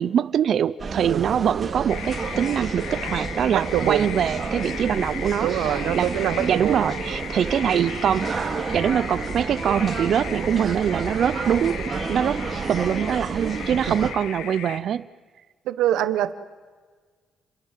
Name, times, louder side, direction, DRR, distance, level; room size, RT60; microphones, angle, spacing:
voice 1, 0.0-5.5 5.9-6.1 6.5-8.3 8.7-12.4 12.7-15.1, right 9 dB, 65° right, 15 dB, 0.7 m, -23 dB
sound 1, 0.8-14.1, right 4 dB, 40° right, 3.3 m, -30 dB
sound 2, 1.9-14.8, left 10 dB, 90° left, 1.5 m, -37 dB
voice 2, 3.5-4.1 5.4-6.8 15.6-16.3, right 12 dB, 90° right, 12 dB, 1.3 m, -24 dB
30.0 x 22.5 x 7.7 m, 1.5 s
cardioid pair, 90°, 0 cm